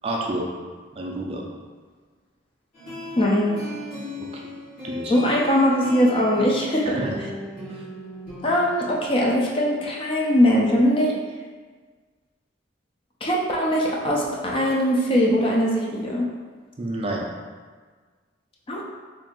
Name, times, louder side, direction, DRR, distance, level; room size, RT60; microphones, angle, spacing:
voice 1, 0.0-0.4 0.9-1.4 4.2-4.4 4.8-5.1 6.9-7.2 7.7-7.8 16.8-17.2, right 1 dB, 30° right, -1 dB, 0.4 m, -29 dB
sound 1, 2.7-8.8, left 1 dB, 50° left, 1.2 m, -37 dB
voice 2, 3.2-3.6 5.1-7.0 8.4-11.2 13.2-16.3 18.7-18.8, equal, 30° left, -2 dB, 0.4 m, -21 dB
2.7 x 2.5 x 3.6 m, 1.5 s
head